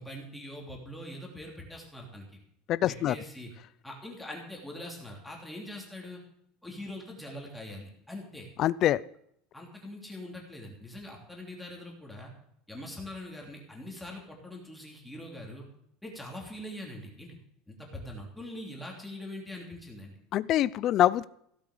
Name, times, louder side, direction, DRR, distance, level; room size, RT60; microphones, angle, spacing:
voice 1, 0.0-2.4 2.9-3.5 3.8-6.2 6.6-8.5 9.5-12.3 12.7-15.6 16.0-17.4 17.7-20.2, left 1 dB, 5° left, -1 dB, 3.2 m, -43 dB
voice 2, 2.7-3.1 8.6-9.0 20.3-21.3, left 12 dB, 35° left, 18 dB, 0.5 m, -24 dB
16.5 x 8.8 x 6.7 m, 0.70 s
cardioid pair, 170°, 0 cm